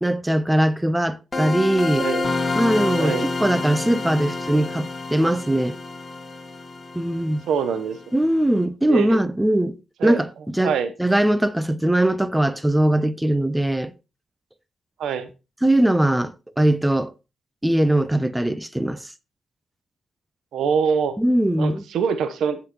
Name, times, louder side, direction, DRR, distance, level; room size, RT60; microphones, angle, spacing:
voice 1, 0.0-2.1 2.6-5.8 6.9-7.4 8.1-13.9 15.6-17.1 17.6-19.1 21.2-21.8, right 1 dB, 10° right, 0.9 m, -21 dB
sound 1, 1.3-8.0, left 3 dB, 30° left, 1.9 m, -28 dB
voice 2, 7.5-8.0 8.9-9.2 10.0-10.2 10.6-10.9 15.0-15.3 20.5-21.2 21.6-22.6, right 6 dB, 75° right, 1.1 m, -24 dB
15.5 x 5.9 x 3.1 m
supercardioid pair, 50°, 0 cm